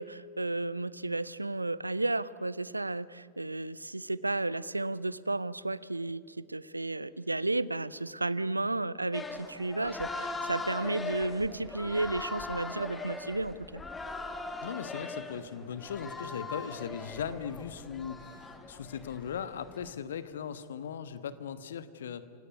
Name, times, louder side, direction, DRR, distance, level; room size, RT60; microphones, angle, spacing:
voice 1, 0.0-13.8, right 2 dB, 85° right, 20 dB, 0.6 m, -33 dB
sound 1, 9.1-19.9, left 3 dB, 15° left, 2.2 m, -40 dB
voice 2, 14.6-22.2, left 7 dB, 65° left, 13 dB, 1.3 m, -38 dB
28.0 x 17.0 x 9.4 m, 2.4 s
figure-of-eight pair, 90°, 0 cm